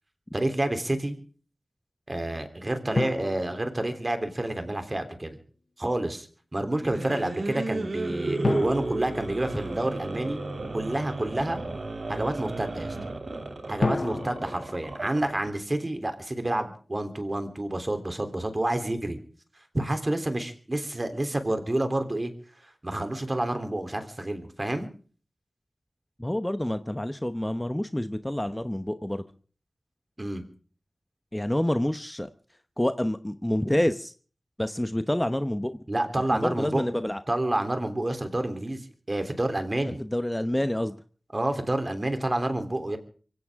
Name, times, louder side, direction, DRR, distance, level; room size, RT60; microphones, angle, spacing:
voice 1, 0.3-1.2 2.1-5.4 5.8-6.3 6.5-10.4 10.7-11.6 12.1-13.0 13.7-19.2 19.7-22.3 22.8-24.9 30.2-30.4 35.9-36.9 37.3-40.0 41.3-43.0, right 1 dB, 35° right, 7 dB, 3.4 m, -29 dB
sound 1, 3.0-4.6 8.4-10.3 13.8-16.1, left 3 dB, 60° left, 0.7 m, -33 dB
sound 2, 6.7-15.5, right 2 dB, 65° right, 3.0 m, -33 dB
voice 2, 26.2-29.2 31.3-32.3 32.8-34.1 34.6-35.8 36.3-37.2 39.8-41.0, left 1 dB, 15° left, 10 dB, 0.9 m, -28 dB
24.0 x 16.5 x 3.7 m, 0.43 s
cardioid pair, 50°, 0 cm